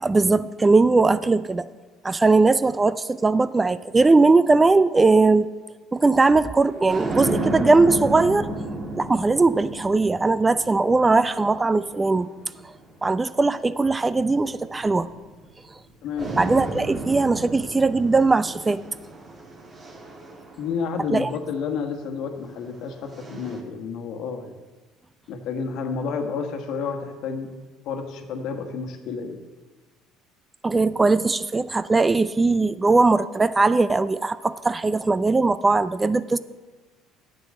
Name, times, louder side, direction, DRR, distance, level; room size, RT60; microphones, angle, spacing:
voice 1, 0.0-1.7 2.0-5.5 5.9-8.5 9.0-12.3 13.0-15.1 16.4-18.8 21.1-21.3 30.6-36.4, right 3 dB, 20° right, 16 dB, 0.4 m, -19 dB
sound 1, 6.6-13.2 14.0-15.8 16.2-21.5 22.5-23.6, right 2 dB, 35° right, 1.8 m, -33 dB
voice 2, 20.6-24.5 25.3-27.5 27.8-29.4, left 5 dB, 65° left, 5 dB, 1.3 m, -30 dB
9.3 x 7.6 x 6.4 m, 1.3 s
supercardioid pair, 80°, 0 cm